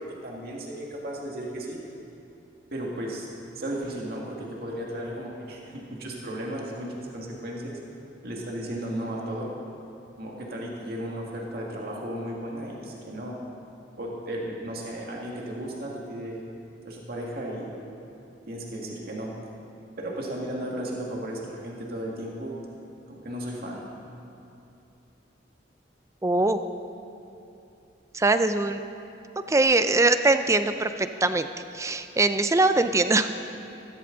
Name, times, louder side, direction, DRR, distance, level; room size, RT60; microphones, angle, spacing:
voice 1, 0.0-1.8 2.7-3.3 3.5-7.8 8.2-9.5 10.2-13.3 14.0-16.4 16.8-17.7 18.5-19.3 20.0-22.5 23.1-23.8, right 1 dB, 55° right, -2 dB, 2.0 m, -35 dB
voice 2, 26.2-26.6 28.1-28.8 29.5-31.5 31.7-33.3, right 2 dB, 15° right, 10 dB, 0.5 m, -22 dB
15.0 x 14.5 x 3.9 m, 2.9 s
head